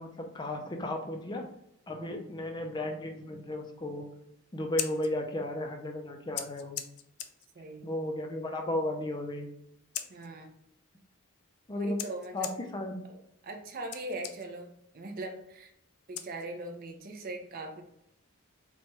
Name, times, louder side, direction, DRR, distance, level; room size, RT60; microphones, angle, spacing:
voice 1, 0.0-1.5 1.9-4.1 4.5-6.8 7.8-9.5 11.7-12.0 12.3-13.0, left 1 dB, 20° left, 3 dB, 0.4 m, -34 dB
voice 2, 1.9-2.3 7.6-8.0 10.1-10.5 11.7-12.5 13.0-14.7 14.9-15.7 16.1-17.8, right 2 dB, 40° right, 3 dB, 0.5 m, -41 dB
Scissors, 4.5-16.9, left 10 dB, 90° left, 0.4 m, -45 dB
4.3 x 2.3 x 3.0 m, 0.77 s
head